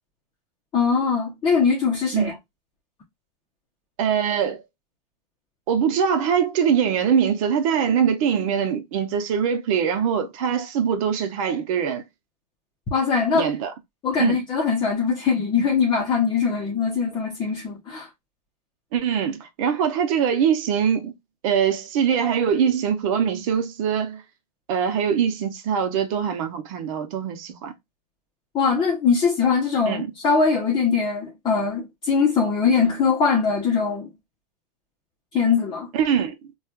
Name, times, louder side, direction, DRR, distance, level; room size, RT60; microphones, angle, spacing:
voice 1, 0.7-2.3 12.9-13.5 14.0-18.1 28.5-34.1 35.3-35.9, left 5 dB, 20° left, 0.8 m, -21 dB
voice 2, 4.0-4.6 5.7-12.0 13.3-13.7 14.2-14.4 18.9-21.1 21.4-24.2 24.7-27.7 29.9-30.1 35.9-36.5, right 7 dB, 55° right, 0.8 m, -22 dB
4.2 x 2.3 x 2.3 m
supercardioid pair, 145°, 21 cm